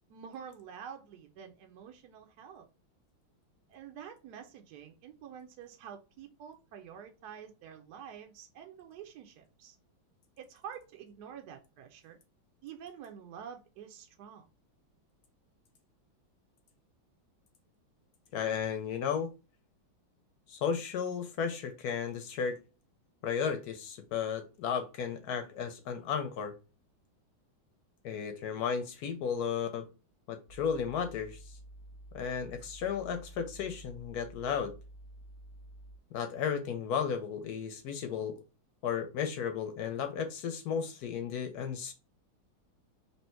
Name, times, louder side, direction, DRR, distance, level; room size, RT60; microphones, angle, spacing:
voice 1, 0.1-2.7 3.7-9.8 10.4-12.2 12.6-14.5, right 8 dB, 70° right, 1.0 m, -48 dB
voice 2, 18.3-19.3 20.5-22.6 23.2-26.5 28.0-29.8 30.3-31.4 32.1-34.7 36.1-38.3 38.8-41.9, left 7 dB, 70° left, 0.9 m, -34 dB
sound 1, 30.5-36.0, right 1 dB, 30° left, 0.7 m, -51 dB
3.3 x 2.8 x 4.3 m
omnidirectional pair, 2.2 m